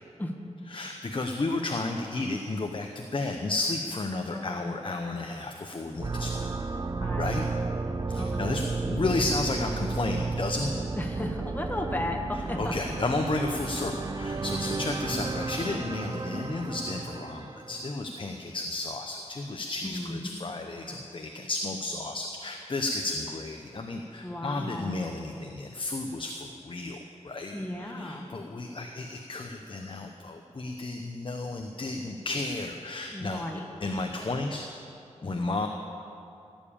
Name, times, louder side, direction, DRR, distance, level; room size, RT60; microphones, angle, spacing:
voice 1, 0.7-6.5 7.2-7.4 8.1-10.7 12.6-27.0 27.2-27.5 27.8-33.4 33.8-34.7 35.2-35.7, left 2 dB, 45° left, 4 dB, 0.8 m, -32 dB
voice 2, 4.0-4.8 7.0-7.4 7.6-8.7 10.7-12.9 14.5-14.6 19.8-20.4 24.2-25.0 27.5-28.3 33.1-33.7, left 1 dB, 15° left, 2 dB, 1.5 m, -36 dB
sound 1, 6.0-17.9, right 3 dB, 30° right, 0.6 m, -33 dB
16.5 x 7.2 x 8.7 m, 2.6 s
wide cardioid pair, 105°, 12 cm